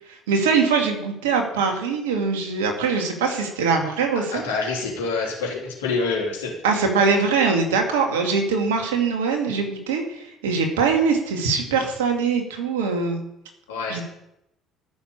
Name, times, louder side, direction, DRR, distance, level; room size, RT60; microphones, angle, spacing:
voice 1, 0.1-4.4 6.6-13.2 13.9-14.0, right 5 dB, 80° right, 3 dB, 2.3 m, -22 dB
voice 2, 4.3-6.6 13.7-14.0, left 4 dB, 80° left, -1 dB, 3.3 m, -26 dB
13.0 x 7.0 x 8.7 m, 0.83 s
hypercardioid pair, 55°, 0 cm